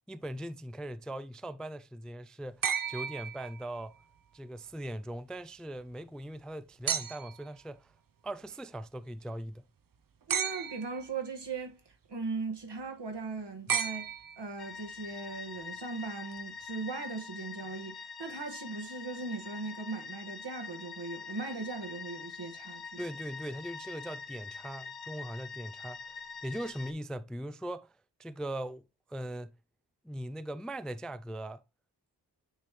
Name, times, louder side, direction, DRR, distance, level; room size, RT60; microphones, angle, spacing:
voice 1, 0.1-3.9 4.3-7.9 8.2-9.6 23.0-28.8 29.1-29.5 30.0-31.6, right 1 dB, ahead, 0.3 m, -40 dB
sound 1, 2.6-4.0 6.9-7.5 10.3-11.1 13.7-14.7 16.3-16.4, right 7 dB, 55° right, 0.6 m, -34 dB
voice 2, 10.3-11.8 12.1-23.0, right 4 dB, 75° right, 1.6 m, -39 dB
sound 2, 14.6-26.9, left 5 dB, 65° left, 0.8 m, -45 dB
9.0 x 3.0 x 3.5 m
wide cardioid pair, 65°, 42 cm